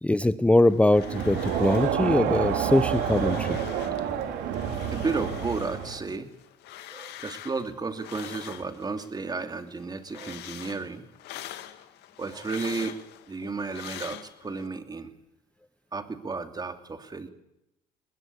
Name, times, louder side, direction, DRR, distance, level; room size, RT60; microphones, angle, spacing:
voice 1, 0.0-3.6, left 1 dB, 5° left, 14 dB, 0.8 m, -22 dB
sound 1, 0.6-2.0 2.3-4.1 4.4-9.1 9.5-14.7, left 13 dB, 80° left, 2.0 m, -44 dB
Crowd, 0.9-6.1, right 8 dB, 85° right, 3.4 m, -28 dB
voice 2, 2.3-2.6 4.1-4.2 4.9-6.3 6.9-11.0 12.2-13.0 13.3-15.1 15.9-17.3, right 4 dB, 25° right, 8 dB, 2.7 m, -33 dB
20.5 x 20.5 x 8.3 m, 0.88 s
cardioid pair, 110°, 17 cm